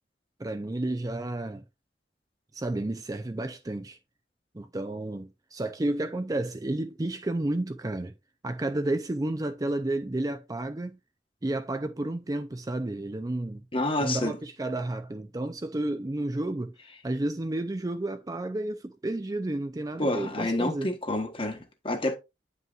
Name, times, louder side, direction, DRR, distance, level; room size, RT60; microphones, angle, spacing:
voice 1, 0.4-1.6 2.5-4.0 4.5-8.1 8.4-11.0 11.4-13.6 14.0-16.7 17.0-20.9, right 1 dB, 20° right, 0.5 m, -31 dB
voice 2, 13.7-14.4 20.0-22.2, left 1 dB, 30° left, 1.3 m, -28 dB
9.1 x 5.5 x 2.5 m
head